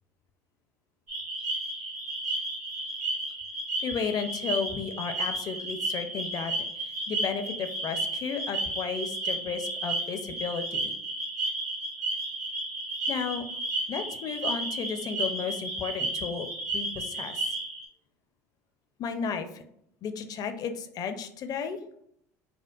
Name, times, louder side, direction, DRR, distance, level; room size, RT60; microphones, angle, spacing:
sound 1, 1.1-17.9, right 2 dB, 85° right, 1.1 m, -33 dB
voice 1, 3.8-6.5 6.8-10.9 13.1-13.5 13.9-16.5 16.7-17.6 19.0-19.6 20.0-21.8, left 6 dB, 45° left, 8 dB, 0.5 m, -33 dB
4.4 x 2.2 x 2.3 m, 0.72 s
hypercardioid pair, 75°, 9 cm